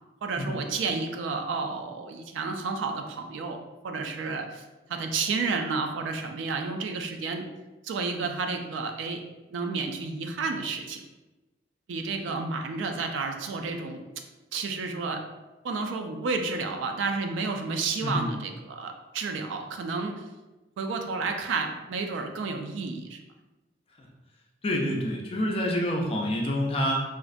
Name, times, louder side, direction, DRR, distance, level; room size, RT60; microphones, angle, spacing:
voice 1, 0.2-3.6 3.8-4.6 4.9-7.5 7.8-9.2 9.5-11.0 11.9-14.1 14.5-15.2 15.6-20.1 20.8-23.2, right 4 dB, 90° right, 5 dB, 0.3 m, -31 dB
voice 2, 18.0-18.3 24.0-24.1 24.6-27.0, equal, 30° left, -1 dB, 0.4 m, -27 dB
2.4 x 2.1 x 2.5 m, 1.1 s
head